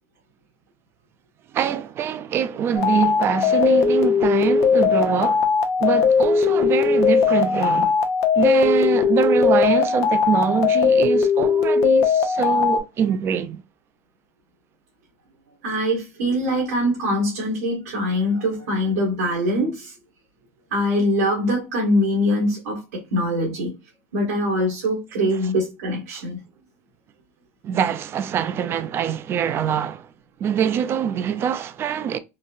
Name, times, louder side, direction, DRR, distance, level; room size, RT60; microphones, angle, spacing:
voice 1, 1.5-5.5 5.8-7.9 8.4-13.6 26.1-26.2 27.6-30.1 30.4-32.2, right 8 dB, 30° right, 0.4 m, -24 dB
sound 1, 2.8-12.8, left 6 dB, 40° left, 0.6 m, -19 dB
voice 2, 15.6-19.9 20.7-22.8 23.1-23.7 24.1-26.4, equal, 90° right, 1.5 m, -23 dB
3.9 x 2.1 x 2.5 m
supercardioid pair, 130°, 8 cm